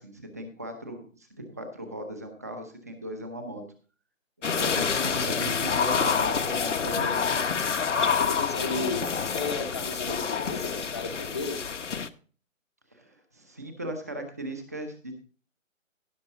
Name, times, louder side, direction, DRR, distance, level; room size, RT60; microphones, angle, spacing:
voice 1, 0.0-3.6 4.5-7.4 12.9-15.2, right 1 dB, 10° right, 6 dB, 0.8 m, -38 dB
sound 1, 4.4-12.1, left 6 dB, 60° left, 1.0 m, -27 dB
voice 2, 8.2-11.6, left 3 dB, 20° left, 7 dB, 0.8 m, -33 dB
16.5 x 6.1 x 3.9 m, 0.41 s
figure-of-eight pair, 165°, 40 cm